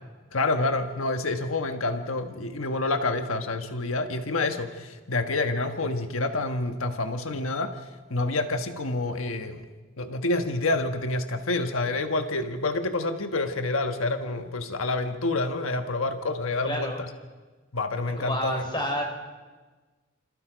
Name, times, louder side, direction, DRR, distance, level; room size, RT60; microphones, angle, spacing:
voice 1, 0.3-9.7 10.0-17.1 17.7-18.6, left 2 dB, 90° left, 6 dB, 1.4 m, -28 dB
voice 2, 16.6-17.0 18.2-19.0, left 1 dB, 25° left, 3 dB, 4.3 m, -29 dB
28.0 x 27.0 x 5.2 m, 1.3 s
head